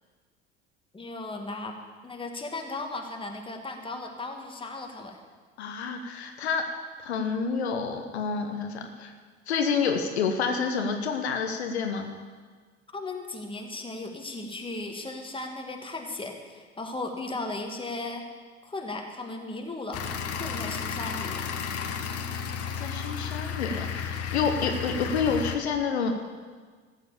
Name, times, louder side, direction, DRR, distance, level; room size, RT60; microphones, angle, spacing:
voice 1, 0.9-1.8 2.0-5.2 12.9-18.2 18.6-20.1 20.3-21.5, left 2 dB, 15° left, 3 dB, 1.9 m, -36 dB
voice 2, 5.6-6.6 7.0-9.1 9.5-12.1 22.8-26.2, left 5 dB, 80° left, 5 dB, 1.1 m, -28 dB
sound 1, 19.9-25.6, left 7 dB, 45° left, 1.3 m, -33 dB
14.0 x 7.8 x 7.0 m, 1.5 s
figure-of-eight pair, 60°, 32 cm